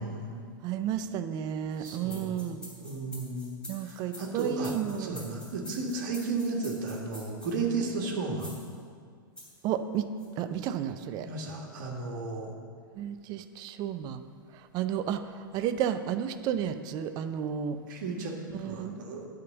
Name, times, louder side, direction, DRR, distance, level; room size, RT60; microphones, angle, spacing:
voice 1, 0.0-0.4 1.8-3.5 3.8-8.6 11.1-12.5 17.9-18.4 18.6-19.3, right 3 dB, 55° right, 0 dB, 1.7 m, -34 dB
voice 2, 0.6-2.6 3.7-5.2 9.6-10.1 10.4-11.3 13.0-14.2 14.7-17.8 18.6-19.0, right 9 dB, 35° right, 10 dB, 0.6 m, -32 dB
sound 1, 1.7-7.5 8.4-8.7 9.4-9.6 10.2-10.3, left 1 dB, 10° left, 2.8 m, -47 dB
9.5 x 5.2 x 7.2 m, 2.2 s
figure-of-eight pair, 100°, 12 cm